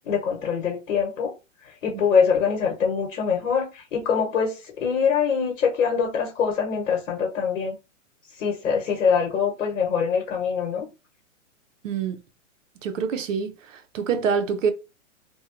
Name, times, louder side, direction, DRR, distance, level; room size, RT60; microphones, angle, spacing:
voice 1, 0.0-1.4 1.6-7.8 8.3-10.9, left 6 dB, 80° left, 1.0 m, -24 dB
voice 2, 11.8-12.2 12.8-14.7, right 6 dB, 75° right, 0.7 m, -26 dB
2.7 x 2.2 x 2.5 m
hypercardioid pair, 155°, 39 cm